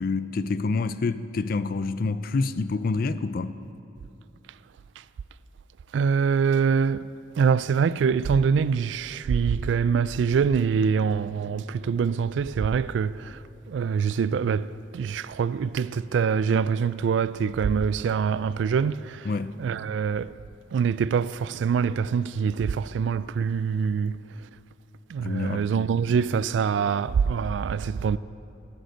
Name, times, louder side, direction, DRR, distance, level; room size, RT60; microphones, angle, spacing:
voice 1, 0.0-3.6 19.3-19.5 25.2-25.6, left 3 dB, 50° left, 0.4 m, -27 dB
voice 2, 5.9-13.4 13.7-19.3 19.6-20.4 20.7-24.5 25.1-28.2, right 6 dB, 85° right, 0.3 m, -24 dB
14.0 x 7.8 x 6.4 m
head